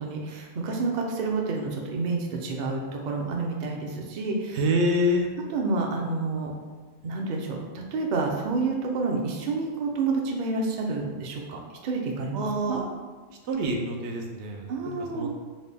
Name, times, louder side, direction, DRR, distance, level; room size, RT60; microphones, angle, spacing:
voice 1, 0.0-4.6 5.5-6.5 7.0-12.8 14.7-15.3, right 3 dB, 55° right, 0 dB, 0.6 m, -29 dB
voice 2, 4.5-5.3 12.3-12.8 13.5-15.3, equal, 90° right, 2 dB, 0.9 m, -26 dB
3.8 x 2.1 x 3.3 m, 1.4 s
omnidirectional pair, 1.1 m